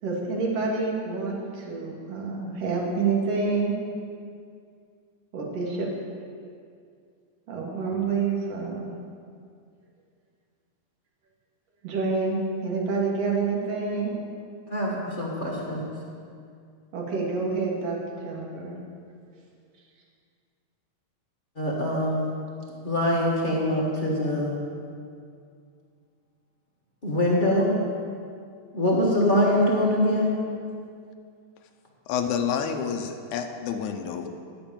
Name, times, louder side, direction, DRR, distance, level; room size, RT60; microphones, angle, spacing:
voice 1, 0.0-3.8 5.3-5.9 7.5-8.9 11.8-14.2 16.9-18.8, right 4 dB, 60° right, -2 dB, 2.7 m, -28 dB
voice 2, 14.7-15.9 21.6-22.3 22.8-24.6 27.0-27.8 28.7-30.4, left 1 dB, 40° left, -5 dB, 0.7 m, -23 dB
voice 3, 32.1-34.3, left 7 dB, 80° left, 5 dB, 2.2 m, -29 dB
12.5 x 5.1 x 8.8 m, 2.3 s
omnidirectional pair, 3.5 m